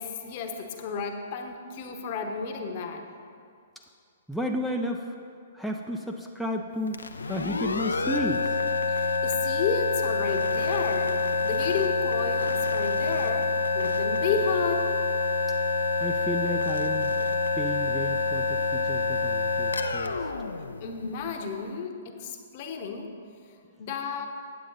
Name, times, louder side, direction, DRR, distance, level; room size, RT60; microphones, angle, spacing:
voice 1, 0.0-3.1 8.9-14.9 20.8-23.1 23.8-24.3, left 5 dB, 45° left, 5 dB, 0.9 m, -32 dB
voice 2, 4.3-5.2 5.5-7.0 7.3-8.6 16.0-17.1 17.6-20.2, equal, ahead, 2 dB, 0.4 m, -32 dB
sound 1, 6.9-21.5, left 4 dB, 85° left, 0.4 m, -27 dB
8.9 x 7.5 x 3.9 m, 2.4 s
hypercardioid pair, 120°, 0 cm